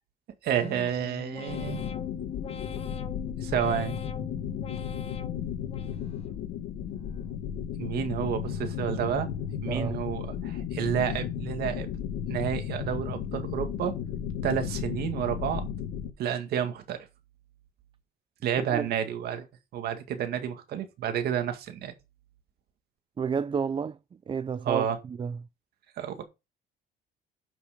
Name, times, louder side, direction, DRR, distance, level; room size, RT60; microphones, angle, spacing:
voice 1, 0.4-1.8 3.4-4.0 7.8-9.3 9.6-11.9 12.3-13.9 14.4-15.7 16.2-17.0 18.4-19.5 19.7-21.9 24.7-25.0 26.0-26.2, right 9 dB, 70° right, 2.0 m, -30 dB
sound 1, 0.6-6.4 6.8-7.5 7.9-8.6 9.0-9.7 10.1-10.7 11.2-11.7, left 6 dB, 35° left, 1.0 m, -44 dB
sound 2, 1.5-16.1, left 8 dB, 85° left, 1.8 m, -34 dB
voice 2, 9.7-10.0 18.7-18.9 23.2-24.0 24.3-25.4, right 6 dB, 30° right, 0.5 m, -30 dB
9.4 x 5.9 x 5.2 m
cardioid pair, 110°, 17 cm